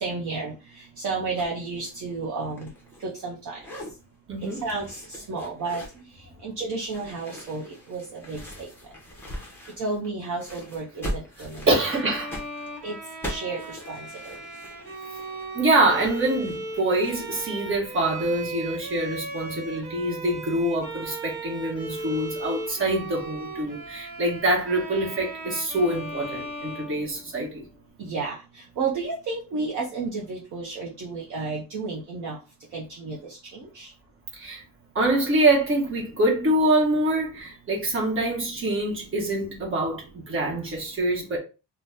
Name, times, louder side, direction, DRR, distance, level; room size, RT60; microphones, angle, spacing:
voice 1, 0.0-0.5 1.0-2.7 3.0-3.6 4.6-5.8 6.4-8.7 9.8-11.7 12.8-12.9 13.3-14.3 28.0-28.4 28.8-32.4 32.7-33.2 33.5-33.9, right 4 dB, 45° right, 0.7 m, -32 dB
sound 1, 1.4-1.6 1.8-3.3 3.6-3.9 4.4-6.0 6.8-10.1 10.4-17.4, equal, 5° left, 0.7 m, -40 dB
voice 2, 4.3-4.6 11.7-12.4 15.5-27.6 34.3-34.6 34.9-41.4, right 1 dB, 30° right, 1.0 m, -25 dB
Bowed string instrument, 11.8-27.7, right 2 dB, 65° right, 1.1 m, -37 dB
2.6 x 2.2 x 3.3 m
cardioid pair, 165°, 41 cm